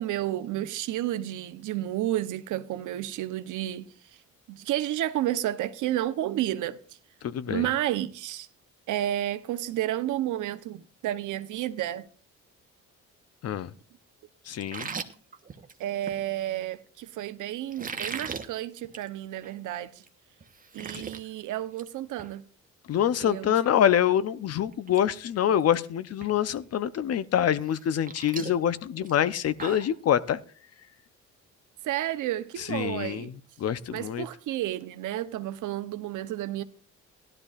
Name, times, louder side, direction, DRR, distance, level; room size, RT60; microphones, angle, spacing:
voice 1, 0.0-3.9 4.5-6.8 7.5-8.5 8.9-12.1 15.8-19.9 20.7-22.4 23.2-23.9 31.8-33.3 33.9-36.6, right 13 dB, 80° right, 0.8 m, -31 dB
voice 2, 7.2-7.6 13.4-13.7 14.5-14.9 22.9-30.4 32.7-33.3 33.6-34.3, left 10 dB, 55° left, 0.7 m, -25 dB
sound 1, 14.6-16.2 17.7-18.5 18.8-19.1 19.4-19.5 20.0-20.1 20.4-21.2 21.6-21.9 22.2-22.3 24.2-24.3 24.7-25.0 25.3-25.8 26.2-26.3 27.6-29.9, right 5 dB, 30° right, 1.0 m, -38 dB
16.5 x 12.0 x 2.4 m
cardioid pair, 90°, 30 cm